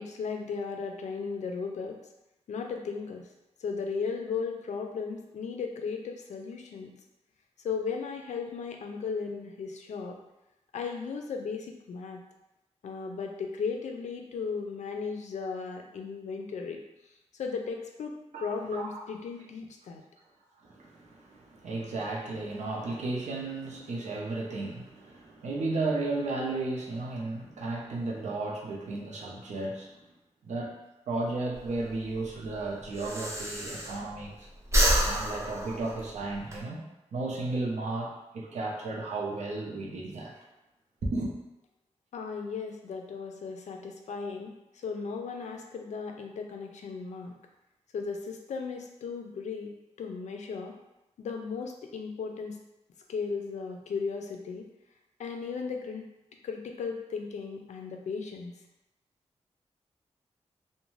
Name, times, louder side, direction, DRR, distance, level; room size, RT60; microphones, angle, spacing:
voice 1, 0.0-2.0 2.5-3.3 3.6-6.9 7.6-10.2 10.7-12.2 12.8-16.8 17.4-20.0 42.1-47.3 47.9-50.8 51.2-52.6 53.1-54.7 55.2-56.0 56.4-58.5, left 5 dB, 80° left, 3 dB, 0.4 m, -36 dB
voice 2, 18.3-19.0 20.6-30.0 30.4-30.8 31.1-34.5 35.0-36.8 37.1-40.4 41.0-41.3, right 2 dB, 80° right, -2 dB, 0.6 m, -34 dB
Breathing, 31.5-34.3 34.6-36.6, equal, 25° right, 0.5 m, -28 dB
2.5 x 2.1 x 3.1 m, 0.96 s
wide cardioid pair, 160°, 12 cm